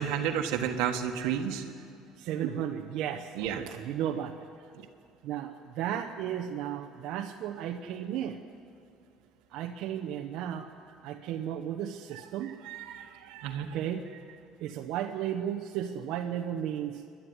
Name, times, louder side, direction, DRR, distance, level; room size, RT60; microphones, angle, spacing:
voice 1, 0.0-1.6 3.4-3.6 12.7-13.8, right 8 dB, 85° right, 3 dB, 1.5 m, -31 dB
voice 2, 2.2-4.4 5.2-8.4 9.5-10.7 11.0-12.6 13.7-14.0 14.6-17.0, right 10 dB, 55° right, 1 dB, 1.0 m, -34 dB
29.0 x 12.0 x 9.7 m, 2.4 s
cardioid pair, 175°, 0 cm